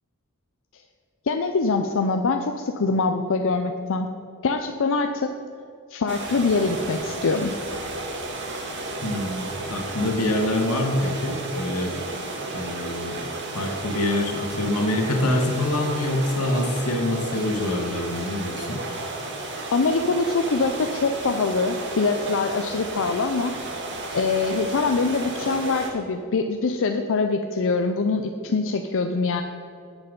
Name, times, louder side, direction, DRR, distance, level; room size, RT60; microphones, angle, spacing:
voice 1, 1.3-4.1 4.4-5.3 5.9-7.5 19.7-23.5 24.1-29.4, left 4 dB, 60° left, 6 dB, 0.5 m, -24 dB
sound 1, 6.1-25.9, right 2 dB, 55° right, 1.6 m, -33 dB
voice 2, 9.0-12.0 12.5-13.2 13.5-18.8, left 1 dB, 85° left, 2 dB, 1.8 m, -25 dB
9.8 x 8.3 x 5.3 m, 2.5 s
head